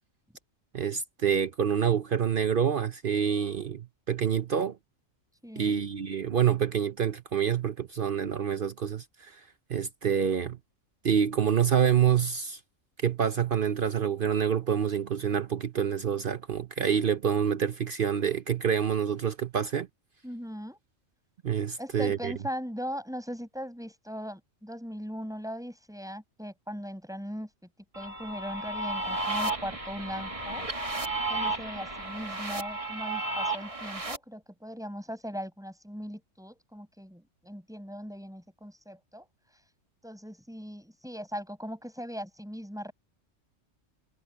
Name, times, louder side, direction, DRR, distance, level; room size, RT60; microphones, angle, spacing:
voice 1, 0.7-4.8 5.6-9.3 9.7-10.6 11.0-12.6 13.0-19.9 21.4-22.3, right 8 dB, 50° right, 0.8 m, -27 dB
voice 2, 5.4-5.8 20.2-20.8 21.8-27.5 27.9-30.7 31.3-39.3 40.0-42.9, equal, 5° right, 7.9 m, -39 dB
sound 1, 27.9-34.2, right 2 dB, 25° right, 1.5 m, -33 dB
omnidirectional pair, 1.3 m